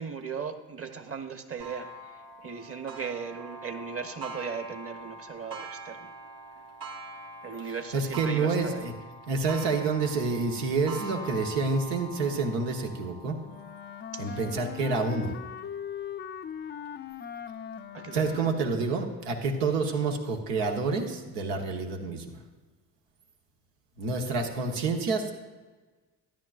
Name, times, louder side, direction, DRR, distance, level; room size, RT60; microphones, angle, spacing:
voice 1, 0.0-6.1 7.4-8.9 14.1-14.4 17.9-18.5, right 6 dB, 30° right, 7 dB, 1.0 m, -38 dB
Clock, 1.6-16.9 17.5-17.6 18.1-18.2 19.2-19.3, right 1 dB, 60° right, 1.8 m, -44 dB
voice 2, 7.6-8.9 9.3-13.4 14.2-15.3 18.1-22.4 24.0-25.3, right 4 dB, 85° right, 3 dB, 1.2 m, -28 dB
Wind instrument woodwind instrument, 13.4-18.9, left 8 dB, 25° left, 0.4 m, -40 dB
12.5 x 10.0 x 2.5 m, 1.3 s
hypercardioid pair, 65°, 45 cm